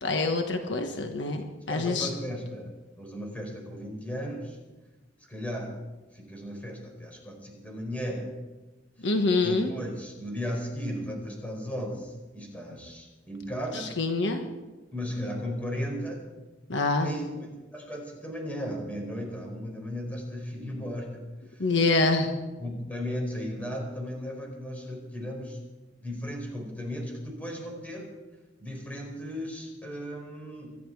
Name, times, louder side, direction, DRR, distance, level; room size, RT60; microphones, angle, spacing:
voice 1, 0.0-2.1 9.0-9.7 14.0-14.4 16.7-17.1 21.6-22.3, left 3 dB, 70° left, 5 dB, 1.3 m, -25 dB
voice 2, 1.7-2.7 3.0-4.6 5.3-5.7 6.1-8.3 9.4-13.9 14.9-16.2 17.0-21.7 22.0-22.1 22.6-25.6 26.0-28.1 28.6-30.8, equal, 10° left, 0 dB, 4.6 m, -36 dB
25.0 x 11.0 x 4.8 m, 1.2 s
head